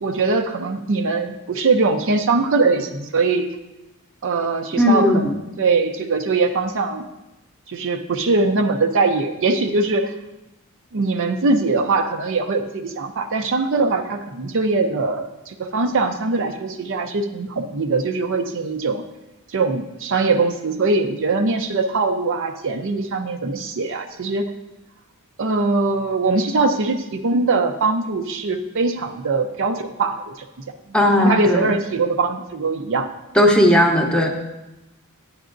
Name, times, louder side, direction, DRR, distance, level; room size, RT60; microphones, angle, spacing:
voice 1, 0.0-3.5 4.2-7.1 7.7-10.1 10.9-19.0 19.5-24.4 25.4-30.5 31.2-33.1 33.7-33.8, right 3 dB, 60° right, 5 dB, 0.6 m, -21 dB
voice 2, 4.8-5.2 30.9-31.7 33.3-34.3, left 1 dB, 5° left, 2 dB, 0.8 m, -16 dB
9.6 x 9.2 x 2.6 m, 0.97 s
head